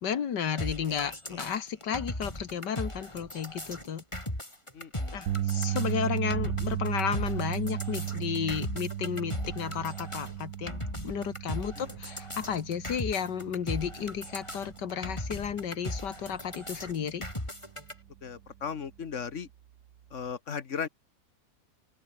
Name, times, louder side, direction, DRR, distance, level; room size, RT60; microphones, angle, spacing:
voice 1, 0.0-4.0 5.1-17.2, left 8 dB, 70° left, 2.0 m, -33 dB
sound 1, 0.6-17.9, left 1 dB, 15° left, 6.0 m, -38 dB
voice 2, 4.7-5.2 11.8-11.9 18.2-19.5 20.1-20.9, left 6 dB, 45° left, 1.7 m, -36 dB
sound 2, 5.3-17.5 17.8-18.1 20.3-20.4, right 11 dB, 65° right, 1.3 m, -36 dB
open air
omnidirectional pair, 1.9 m